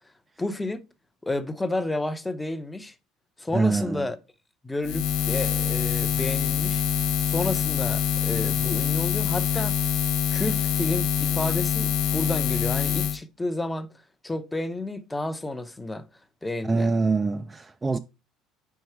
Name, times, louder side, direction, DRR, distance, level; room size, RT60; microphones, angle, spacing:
voice 1, 0.4-0.8 1.2-2.9 3.4-4.2 4.6-6.8 7.3-9.8 10.3-13.9 14.2-16.1 16.4-16.9, left 2 dB, 10° left, 0.7 m, -31 dB
voice 2, 3.5-4.1 16.6-18.0, right 3 dB, 20° right, 0.3 m, -25 dB
Buzz, 4.8-13.2, left 8 dB, 70° left, 0.6 m, -25 dB
4.6 x 4.6 x 4.5 m
supercardioid pair, 105°, 0 cm